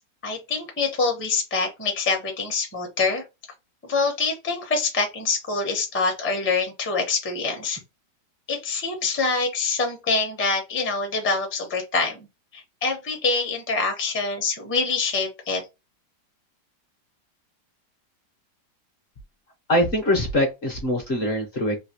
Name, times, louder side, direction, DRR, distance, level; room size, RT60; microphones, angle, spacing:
voice 1, 0.2-3.2 3.9-7.8 8.5-12.3 12.5-15.6, left 4 dB, 10° left, 0.5 m, -25 dB
voice 2, 19.7-21.8, left 1 dB, 50° left, 0.9 m, -23 dB
3.2 x 2.7 x 2.9 m
omnidirectional pair, 1.8 m